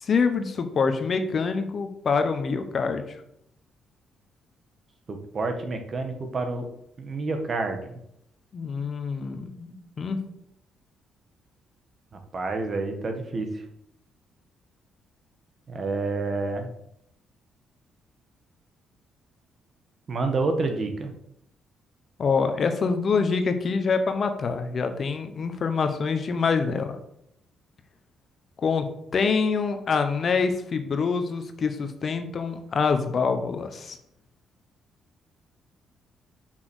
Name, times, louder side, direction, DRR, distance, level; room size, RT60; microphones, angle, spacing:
voice 1, 0.0-3.2 8.5-10.2 22.2-27.0 28.6-34.0, left 5 dB, 50° left, 8 dB, 1.1 m, -25 dB
voice 2, 5.1-6.7 7.0-8.0 12.3-13.5 15.7-16.7 20.1-21.1, right 3 dB, 40° right, 5 dB, 1.6 m, -28 dB
6.1 x 5.9 x 6.3 m, 0.74 s
cardioid pair, 90°, 0 cm